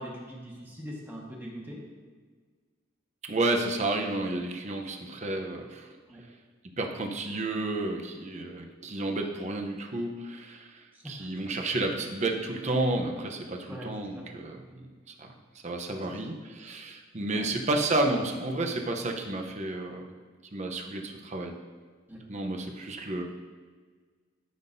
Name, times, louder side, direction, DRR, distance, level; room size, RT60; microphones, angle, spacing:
voice 1, 0.0-1.8 6.1-6.2 10.9-11.3 13.7-14.3 16.1-16.2 17.3-17.5 22.1-22.3, equal, 10° right, -3 dB, 1.5 m, -42 dB
voice 2, 3.2-6.0 6.6-14.9 15.2-15.3 15.6-20.1 20.5-21.6 22.3-23.2, right 2 dB, 35° right, 3 dB, 0.8 m, -31 dB
13.0 x 5.9 x 2.7 m, 1.5 s
head